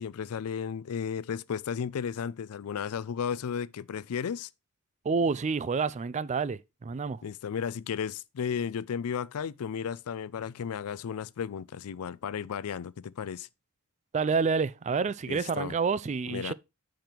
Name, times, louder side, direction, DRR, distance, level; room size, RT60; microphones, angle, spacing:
voice 1, 0.0-4.5 7.2-13.5 15.3-15.7 16.3-16.5, left 7 dB, 80° left, 0.4 m, -34 dB
voice 2, 5.0-7.2 14.1-16.5, right 5 dB, 30° right, 0.3 m, -28 dB
7.6 x 5.2 x 4.4 m
head